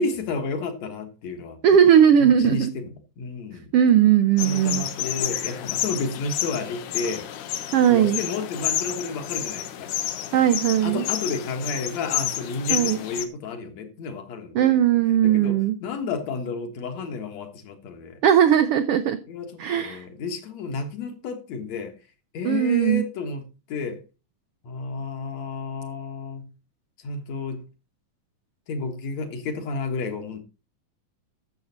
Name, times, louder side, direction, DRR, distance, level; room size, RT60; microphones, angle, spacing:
voice 1, 0.0-1.6 2.2-2.9 3.2-3.7 4.4-7.3 7.9-9.9 10.8-14.8 15.2-18.2 19.3-21.9 22.3-24.0 24.6-26.5 27.0-27.6 28.7-30.4, left 4 dB, 65° left, 2.6 m, -31 dB
voice 2, 1.6-2.7 3.7-4.9 7.7-8.2 10.3-11.0 12.7-13.0 14.5-15.8 18.2-19.2 19.6-20.0 22.4-23.0, right 9 dB, 80° right, 1.3 m, -18 dB
sound 1, 4.4-13.3, left 11 dB, 85° left, 2.5 m, -30 dB
13.0 x 7.4 x 4.1 m
omnidirectional pair, 3.5 m